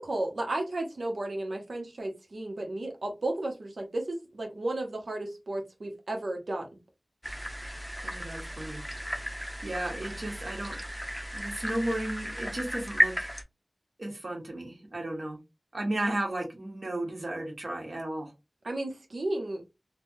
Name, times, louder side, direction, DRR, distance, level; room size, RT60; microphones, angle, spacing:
voice 1, 0.0-6.7 18.6-19.6, right 2 dB, 90° right, 2 dB, 0.9 m, -33 dB
sound 1, 7.2-13.4, equal, 5° left, 0.6 m, -34 dB
voice 2, 8.0-8.8 9.6-10.8 11.3-13.3 14.0-15.4 15.7-18.3, right 1 dB, 70° right, 1 dB, 1.3 m, -34 dB
3.3 x 2.2 x 2.6 m, 0.23 s
wide cardioid pair, 60°, 0 cm